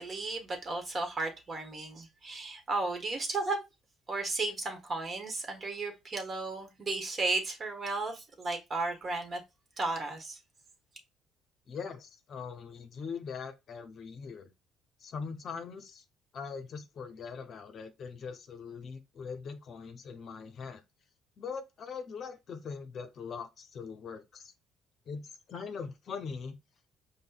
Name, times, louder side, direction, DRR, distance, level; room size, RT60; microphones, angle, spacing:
voice 1, 0.0-3.6 4.1-9.4 9.8-10.4, right 3 dB, 40° right, 1.2 m, -34 dB
voice 2, 11.7-14.5 15.0-16.0 16.3-20.8 21.4-24.5 25.1-25.2 25.5-26.6, left 5 dB, 55° left, 0.6 m, -41 dB
5.3 x 2.2 x 2.3 m
supercardioid pair, 70°, 0 cm